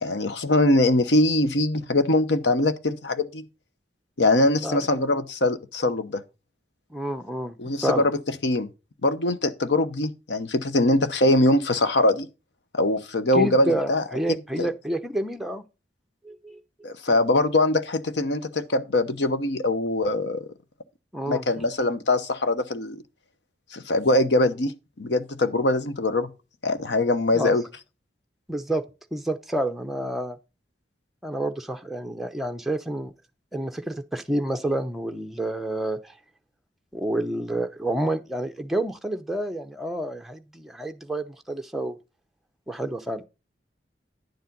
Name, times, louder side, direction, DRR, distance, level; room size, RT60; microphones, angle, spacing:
voice 1, 0.0-3.4 4.2-6.2 7.6-8.2 8.4-8.7 9.0-12.3 12.7-14.0 14.6-14.7 16.8-20.4 21.3-23.0 23.7-24.7 25.0-26.3 26.6-27.6, left 2 dB, 80° left, 0.9 m, -22 dB
voice 2, 6.9-7.6 7.8-8.1 13.3-15.6 16.2-16.6 21.1-21.6 27.3-27.5 28.5-28.8 29.1-30.4 31.2-33.1 33.5-36.2 36.9-42.0 42.7-43.2, right 1 dB, ahead, 0.7 m, -29 dB
10.5 x 7.1 x 3.9 m
head